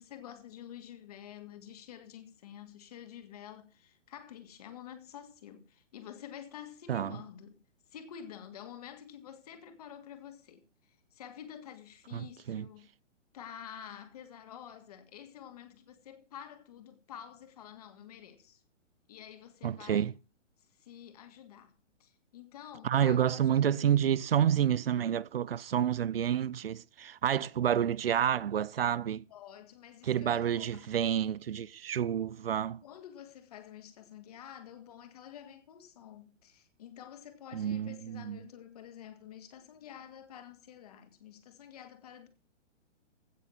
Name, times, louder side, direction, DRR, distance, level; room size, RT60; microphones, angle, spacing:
voice 1, 0.0-7.6 7.9-12.9 13.3-18.6 19.1-20.1 20.8-21.7 22.0-23.5 27.3-27.8 29.3-30.9 32.8-42.3, left 9 dB, 30° left, 1.9 m, -49 dB
voice 2, 6.9-7.2 12.1-12.7 19.6-20.1 22.8-29.2 30.0-32.8 37.5-38.4, right 9 dB, 50° right, 0.5 m, -29 dB
16.0 x 6.7 x 5.9 m
hypercardioid pair, 175°, 37 cm